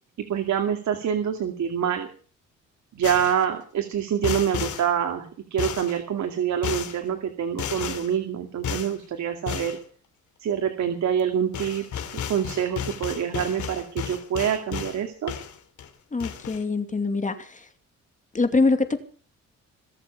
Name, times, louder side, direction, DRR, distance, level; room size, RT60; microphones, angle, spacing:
voice 1, 0.2-2.1 2.9-5.3 5.5-9.8 10.4-11.8 12.1-15.3, right 8 dB, 65° right, 5 dB, 2.5 m, -26 dB
sound 1, 3.0-3.5 4.2-4.9 5.6-6.0 6.6-7.0 7.6-8.1 8.6-9.0 9.5-9.8 11.2-11.3 11.5-15.0 15.3-15.9 16.2-16.6, left 8 dB, 75° left, 3.1 m, -33 dB
voice 2, 16.1-17.6 18.3-19.0, left 3 dB, 25° left, 8 dB, 2.4 m, -24 dB
23.0 x 7.7 x 6.9 m, 0.42 s
cardioid pair, 90°, 30 cm